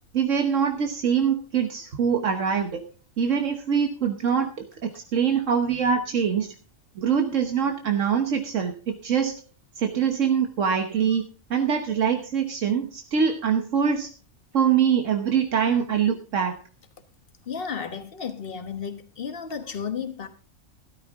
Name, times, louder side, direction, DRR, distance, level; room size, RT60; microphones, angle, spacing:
voice 1, 0.1-2.8 3.2-4.5 4.8-6.5 7.0-9.3 9.8-11.2 11.5-14.1 14.5-16.6, right 7 dB, 75° right, 1.4 m, -24 dB
voice 2, 17.5-20.3, left 6 dB, 50° left, 1.4 m, -33 dB
13.0 x 13.0 x 3.6 m
omnidirectional pair, 1.3 m